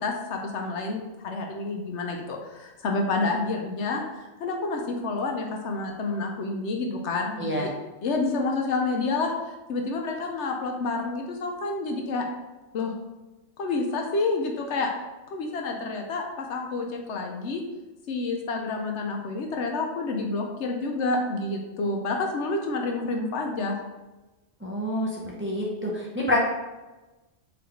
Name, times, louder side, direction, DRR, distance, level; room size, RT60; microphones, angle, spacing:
voice 1, 0.0-7.7 8.0-9.3 9.7-12.2 12.7-12.9 13.6-14.9 15.3-17.6 18.1-23.8, left 3 dB, 70° left, 2 dB, 0.9 m, -29 dB
voice 2, 24.6-25.1 25.4-26.4, left 1 dB, 15° right, -3 dB, 0.6 m, -27 dB
3.9 x 3.8 x 3.4 m, 1.1 s
omnidirectional pair, 1.3 m